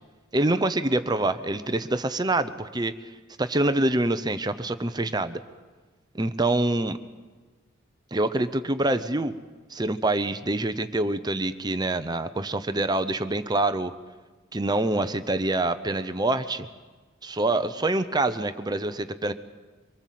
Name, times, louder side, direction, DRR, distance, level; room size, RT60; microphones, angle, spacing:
voice 1, 0.3-3.0 3.4-5.4 6.1-7.0 8.1-9.3 9.7-13.9 14.5-16.7 17.2-19.3, right 2 dB, 20° right, 10 dB, 0.8 m, -25 dB
24.5 x 24.0 x 7.6 m, 1.3 s
head